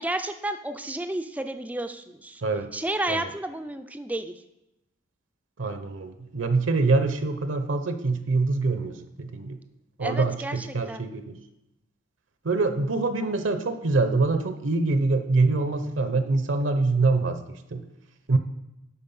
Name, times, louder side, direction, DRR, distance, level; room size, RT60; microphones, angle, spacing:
voice 1, 0.0-2.4 2.7-4.3 10.0-11.0, right 1 dB, 10° right, 8 dB, 0.3 m, -31 dB
voice 2, 5.6-9.6 10.0-11.4 12.4-17.8 18.3-18.4, right 3 dB, 70° right, 9 dB, 0.7 m, -25 dB
11.0 x 4.4 x 5.4 m, 0.91 s
head